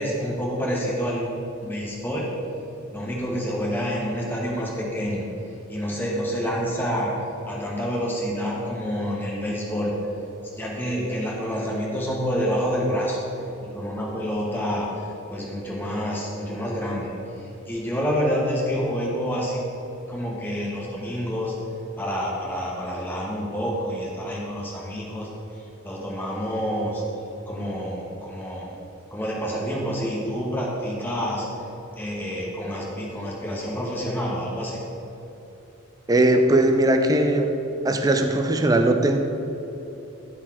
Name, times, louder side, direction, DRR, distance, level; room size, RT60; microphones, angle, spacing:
voice 1, 0.0-1.4 1.6-2.3 2.9-5.3 5.7-7.1 7.5-9.9 10.6-13.2 13.6-17.1 17.4-19.6 20.1-21.5 22.0-25.3 25.6-27.0 27.5-28.7 29.1-31.5 32.0-34.8, equal, 10° left, -4 dB, 1.1 m, -28 dB
voice 2, 36.1-37.5 37.8-39.2, right 1 dB, 15° right, 5 dB, 0.4 m, -19 dB
10.5 x 4.2 x 4.3 m, 2.9 s
head